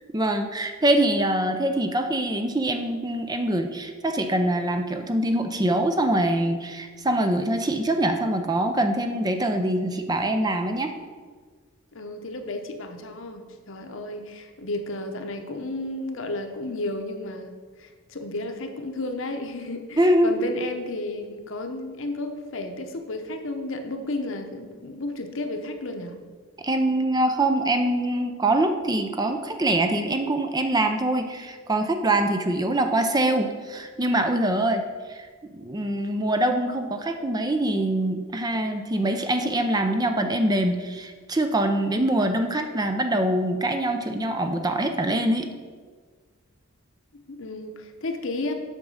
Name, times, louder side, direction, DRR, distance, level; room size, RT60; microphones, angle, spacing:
voice 1, 0.1-10.9 20.0-20.3 26.6-34.8 35.1-45.5, right 1 dB, 20° right, 6 dB, 0.5 m, -24 dB
voice 2, 11.9-26.2 47.1-48.5, left 2 dB, 60° left, 6 dB, 0.9 m, -33 dB
8.1 x 6.0 x 5.5 m, 1.5 s
head